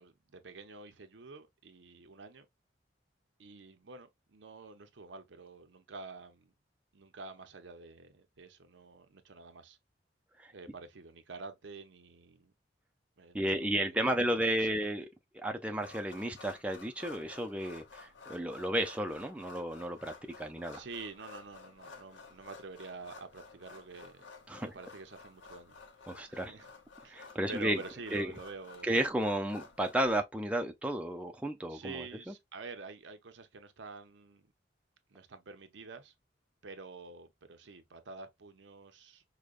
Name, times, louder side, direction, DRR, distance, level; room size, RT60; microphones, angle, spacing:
voice 1, 0.0-2.5 3.4-6.5 6.9-9.8 10.5-12.5 13.2-14.8 20.7-24.3 24.7-25.8 26.3-26.7 27.0-29.0 31.7-34.5 35.1-36.1 36.6-39.2, right 3 dB, 75° right, 0.7 m, -48 dB
voice 2, 13.3-15.1 15.3-20.8 24.5-24.7 26.1-26.5 27.1-27.8 28.1-28.3 28.8-32.3, right 1 dB, 5° right, 0.4 m, -33 dB
sound 1, 15.8-30.2, left 4 dB, 75° left, 0.7 m, -53 dB
4.9 x 2.2 x 2.4 m
head